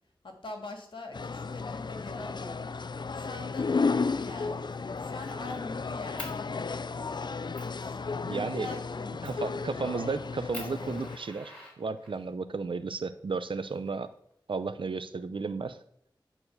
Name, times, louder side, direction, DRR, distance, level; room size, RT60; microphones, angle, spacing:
voice 1, 0.2-6.6 7.1-7.3 7.8-9.3, left 2 dB, 80° left, 3 dB, 2.0 m, -43 dB
sound 1, 1.1-11.2, left 4 dB, 60° left, 0.5 m, -33 dB
Fire, 4.0-4.3 4.7-5.6 6.2-6.4 7.0-7.1 7.5-7.8 9.2-9.5 10.0-10.1 10.5-12.3 13.3-14.3, left 1 dB, 15° left, 4.4 m, -45 dB
voice 2, 8.3-8.7 9.2-14.1 14.5-15.8, right 4 dB, 85° right, 12 dB, 0.7 m, -33 dB
11.0 x 4.4 x 8.0 m, 0.74 s
wide cardioid pair, 70°, 8 cm